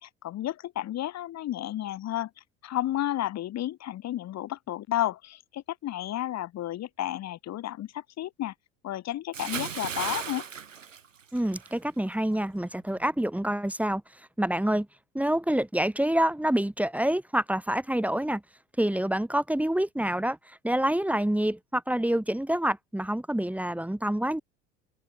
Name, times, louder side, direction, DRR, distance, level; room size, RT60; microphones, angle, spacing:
voice 1, 0.0-8.5 8.8-10.4, left 13 dB, 45° left, 4.0 m, -32 dB
Bathtub (filling or washing) / Splash splatter, 9.3-11.8 12.1-12.4, right 7 dB, 85° right, 3.4 m, -36 dB
voice 2, 11.3-14.0 14.4-14.9 15.1-18.4 18.8-24.4, right 1 dB, 5° right, 3.9 m, -27 dB
hypercardioid pair, 70°, 37 cm